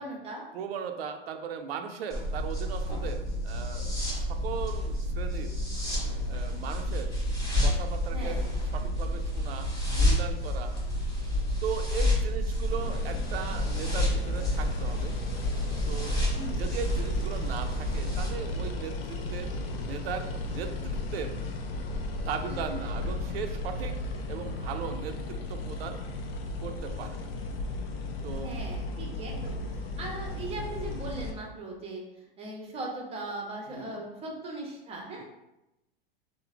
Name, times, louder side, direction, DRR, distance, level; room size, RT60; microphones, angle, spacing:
voice 1, 0.0-0.4 8.1-8.5 16.4-16.7 22.4-22.6 28.4-35.2, right 2 dB, 20° right, 0 dB, 0.6 m, -39 dB
voice 2, 0.5-5.5 6.3-7.1 7.6-8.5 8.7-10.7 11.6-15.2 15.9-16.2 16.6-21.4 22.2-23.9 24.3-26.0 26.6-27.3 28.2-28.6 33.7-34.0, right 7 dB, 85° right, 7 dB, 0.4 m, -38 dB
sound 1, 2.1-18.3, left 1 dB, 15° left, 0.8 m, -29 dB
sound 2, 12.8-31.3, left 2 dB, 80° left, 0.5 m, -35 dB
3.0 x 2.1 x 2.4 m, 0.93 s
hypercardioid pair, 115°, 29 cm